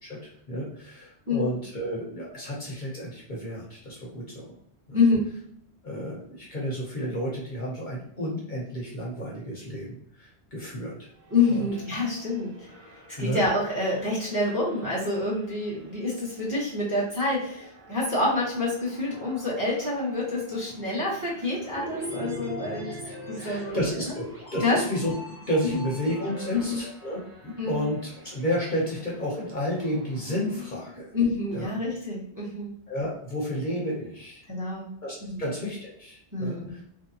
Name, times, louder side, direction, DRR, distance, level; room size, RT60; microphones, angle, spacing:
voice 1, 0.0-4.5 4.9-5.0 5.8-11.1 11.4-11.6 13.2-13.4 22.8-31.1 31.5-31.7 32.9-34.4 35.0-36.8, equal, 50° left, -4 dB, 0.9 m, -32 dB
voice 2, 4.9-5.3 11.3-12.7 13.2-22.9 23.3-23.8 24.6-24.8 25.7-25.9 26.5-26.8 27.6-27.9 31.1-32.7 34.5-34.9 35.2-35.5 36.3-36.7, left 2 dB, 20° right, -7 dB, 1.0 m, -27 dB
sound 1, 11.2-31.0, right 1 dB, 50° right, 0.8 m, -45 dB
sound 2, 21.8-26.8, left 3 dB, 15° left, 0.8 m, -43 dB
3.0 x 2.7 x 2.8 m, 0.70 s
omnidirectional pair, 1.1 m